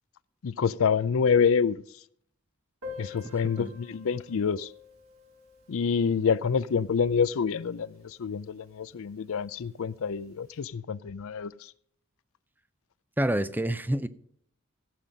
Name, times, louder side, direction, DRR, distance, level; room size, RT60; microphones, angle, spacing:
voice 1, 0.4-1.8 3.0-4.7 5.7-11.5, left 6 dB, 65° left, 0.5 m, -27 dB
Piano, 2.8-8.2 8.4-8.5 8.7-8.9 9.2-9.3 10.1-10.3, left 5 dB, 80° right, 3.7 m, -48 dB
voice 2, 13.2-14.1, right 1 dB, 10° right, 0.5 m, -27 dB
16.0 x 7.5 x 5.2 m
head